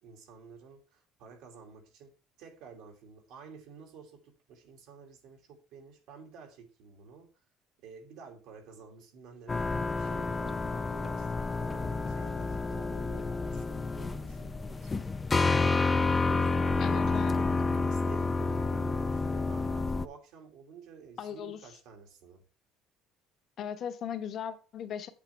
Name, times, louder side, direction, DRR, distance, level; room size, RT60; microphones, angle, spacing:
voice 1, 0.0-7.3 7.8-15.2 15.8-22.4, right 6 dB, 75° right, 2.5 m, -51 dB
sound 1, 9.5-20.1, left 3 dB, 20° left, 0.5 m, -29 dB
voice 2, 16.8-17.3 21.2-21.6 23.6-25.1, left 8 dB, 50° left, 1.1 m, -37 dB
8.3 x 7.7 x 3.4 m
cardioid pair, 120°, 0 cm